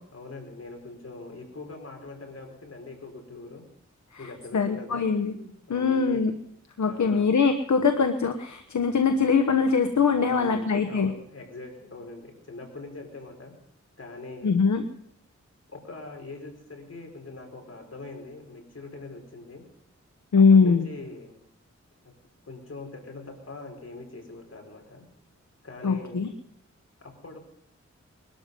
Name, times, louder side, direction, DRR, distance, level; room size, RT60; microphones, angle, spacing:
voice 1, 0.1-3.6 4.2-6.2 6.8-7.3 10.3-13.5 14.0-14.5 15.7-19.6 20.5-21.4 22.4-25.0 25.6-26.2 27.0-27.4, left 3 dB, 55° left, 2 dB, 4.7 m, -42 dB
voice 2, 4.1-5.4 5.7-6.3 6.8-11.1 14.4-14.8 20.3-20.9 25.8-26.3, left 5 dB, 75° left, 7 dB, 1.1 m, -22 dB
21.0 x 12.5 x 5.4 m, 0.72 s
wide cardioid pair, 85°, 29 cm